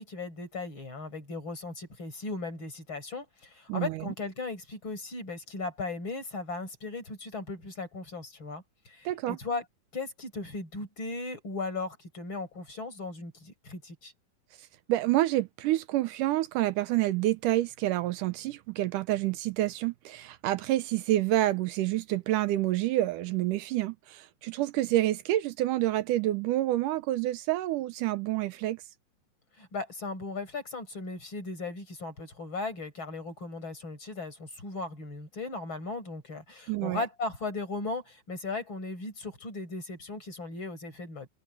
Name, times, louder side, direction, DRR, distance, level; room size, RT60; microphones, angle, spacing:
voice 1, 0.0-9.6 9.9-14.1 29.6-41.3, left 3 dB, 35° left, 6.0 m, -37 dB
voice 2, 3.7-4.1 9.1-9.4 14.9-28.8 36.7-37.0, right 15 dB, 80° right, 2.3 m, -28 dB
omnidirectional pair, 3.8 m